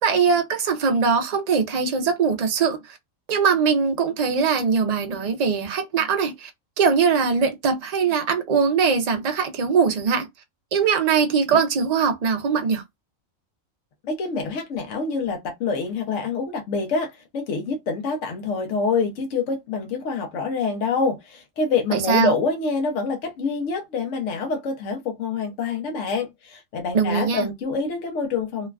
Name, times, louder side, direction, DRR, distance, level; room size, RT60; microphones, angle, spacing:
voice 1, 0.0-3.0 3.3-6.5 6.8-10.3 10.7-12.8 21.9-22.3 26.9-27.5, right 6 dB, 70° right, 0.4 m, -21 dB
voice 2, 14.1-28.7, left 4 dB, 65° left, 1.0 m, -26 dB
3.0 x 2.2 x 2.3 m
omnidirectional pair, 1.4 m